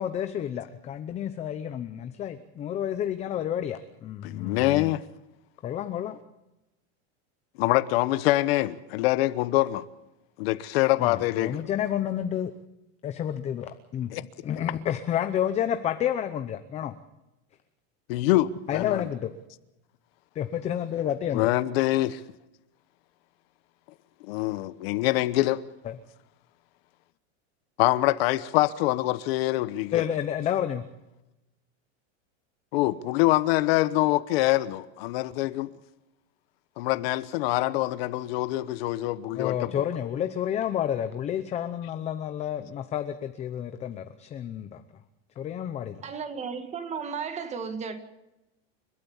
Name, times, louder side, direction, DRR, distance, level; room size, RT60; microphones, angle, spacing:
voice 1, 0.0-4.9 5.6-6.2 11.0-12.5 13.0-14.1 14.4-16.9 18.7-19.3 20.3-21.5 25.8-26.0 29.9-30.9 39.3-44.8 45.4-46.0, left 10 dB, 20° left, 0.7 m, -30 dB
voice 2, 4.2-5.0 7.6-9.8 10.4-11.6 14.1-14.2 18.1-19.1 21.3-22.2 24.3-25.6 27.8-30.1 32.7-35.7 36.8-39.8, left 17 dB, 55° left, 1.1 m, -25 dB
voice 3, 46.0-48.0, right 6 dB, 20° right, 1.8 m, -34 dB
30.0 x 13.0 x 7.2 m
supercardioid pair, 170°, 35 cm